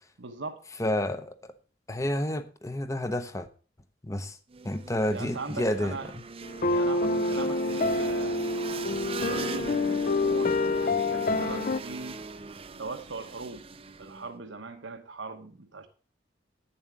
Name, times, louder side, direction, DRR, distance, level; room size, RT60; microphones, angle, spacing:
voice 1, 0.2-0.6 5.1-6.1 6.7-8.4 8.9-12.2 12.8-13.6 14.0-15.9, right 3 dB, 85° right, 6 dB, 1.1 m, -40 dB
voice 2, 0.8-1.5 1.9-3.5 4.0-4.4 4.6-6.0, left 1 dB, 15° left, 10 dB, 0.8 m, -30 dB
sound 1, 4.5-14.3, right 4 dB, 30° right, 0.5 m, -40 dB
sound 2, 6.4-11.8, left 2 dB, 45° left, 0.5 m, -27 dB
9.4 x 7.3 x 6.1 m, 0.39 s
head